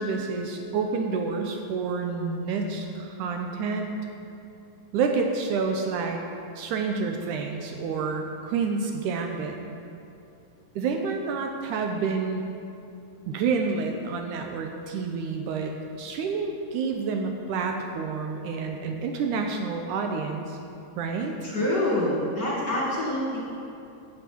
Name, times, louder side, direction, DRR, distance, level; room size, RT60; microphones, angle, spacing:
voice 1, 0.0-4.1 4.9-6.2 6.6-9.6 10.8-12.4 13.3-20.6 21.0-21.3, right 4 dB, 80° right, 3 dB, 2.0 m, -29 dB
voice 2, 21.4-23.4, left 1 dB, 40° left, -5 dB, 1.9 m, -26 dB
10.5 x 6.1 x 8.3 m, 2.7 s
omnidirectional pair, 3.9 m